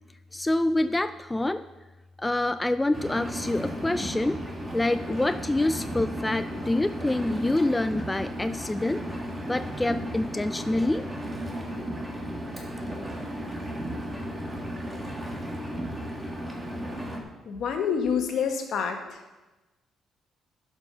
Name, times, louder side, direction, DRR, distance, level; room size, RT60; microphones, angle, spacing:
voice 1, 0.3-1.6 2.2-4.4 4.7-9.0 9.4-11.0, left 2 dB, 15° left, 10 dB, 0.3 m, -26 dB
Engine, 2.9-17.2, equal, 20° right, 1.7 m, -34 dB
voice 2, 17.5-19.1, left 6 dB, 70° left, 4 dB, 1.3 m, -27 dB
11.0 x 5.4 x 5.5 m, 1.1 s
cardioid pair, 90°, 0 cm